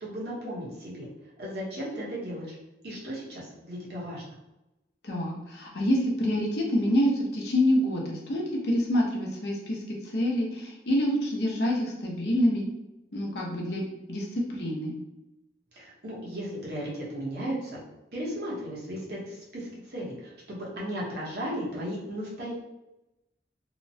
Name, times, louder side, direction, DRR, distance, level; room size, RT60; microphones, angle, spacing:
voice 1, 0.0-1.1 1.4-2.5 2.8-4.3 15.7-17.8 18.1-22.5, equal, 60° right, -4 dB, 0.9 m, -35 dB
voice 2, 5.0-12.7 13.1-14.9, equal, 65° left, -1 dB, 0.6 m, -27 dB
2.8 x 2.1 x 2.6 m, 0.94 s
head